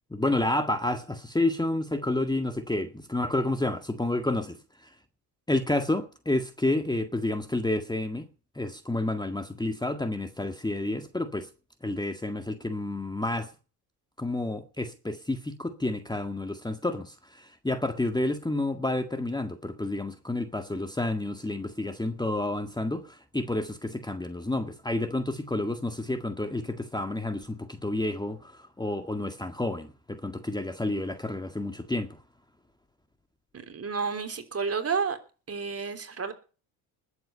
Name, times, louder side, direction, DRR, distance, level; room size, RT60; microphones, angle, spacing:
voice 1, 0.1-5.0 5.5-8.3 8.6-11.5 11.8-13.5 14.2-32.2, left 2 dB, 10° left, 1.8 m, -30 dB
voice 2, 33.5-35.2 35.5-36.3, right 5 dB, 30° right, 3.4 m, -31 dB
20.5 x 8.2 x 5.5 m
hypercardioid pair, 70°, 47 cm